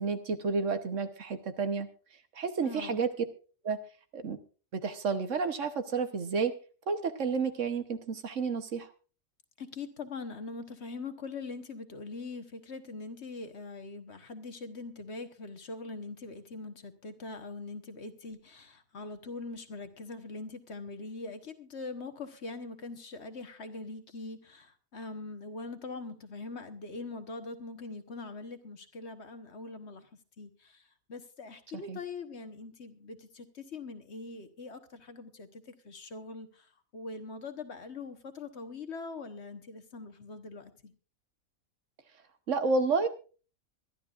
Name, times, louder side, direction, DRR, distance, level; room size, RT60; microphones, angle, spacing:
voice 1, 0.0-1.9 2.4-3.1 3.6-3.8 4.1-4.4 4.7-6.5 6.9-8.9 31.9-32.0 42.5-43.1, right 4 dB, 65° right, 9 dB, 1.4 m, -30 dB
voice 2, 2.6-3.0 9.6-30.1 30.4-30.8 31.1-40.9, left 3 dB, 55° left, 8 dB, 1.5 m, -42 dB
23.0 x 11.5 x 2.5 m, 0.36 s
omnidirectional pair, 1.4 m